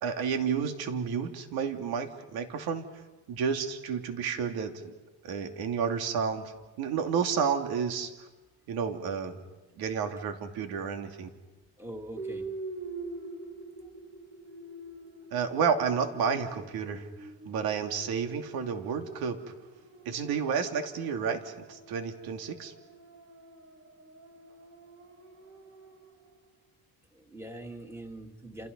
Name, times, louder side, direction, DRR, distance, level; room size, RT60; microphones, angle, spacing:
voice 1, 0.0-2.9 3.3-4.9 5.2-6.5 6.8-8.1 8.7-9.4 9.8-11.3 15.3-17.1 17.4-19.4 20.0-22.7, right 6 dB, 85° right, 5 dB, 2.8 m, -31 dB
voice 2, 11.8-12.4 27.1-28.7, right 1 dB, 5° right, 3 dB, 2.6 m, -42 dB
sound 1, 12.2-26.4, right 3 dB, 50° right, 3.3 m, -45 dB
30.0 x 28.5 x 5.5 m, 1.2 s
cardioid pair, 165°, 35 cm